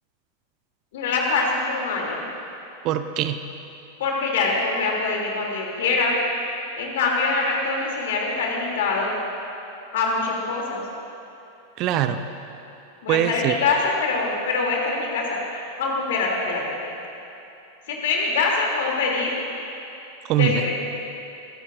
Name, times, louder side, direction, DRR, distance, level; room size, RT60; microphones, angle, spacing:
voice 1, 0.9-2.2 4.0-6.2 6.8-9.1 9.9-10.8 13.0-16.9 17.9-19.4 20.3-20.7, left 3 dB, 55° left, -2 dB, 3.2 m, -24 dB
voice 2, 2.8-3.4 11.8-12.2 13.1-13.6 20.3-20.6, right 11 dB, 40° right, 9 dB, 0.7 m, -22 dB
24.0 x 16.0 x 2.7 m, 2.8 s
figure-of-eight pair, 90°, 0 cm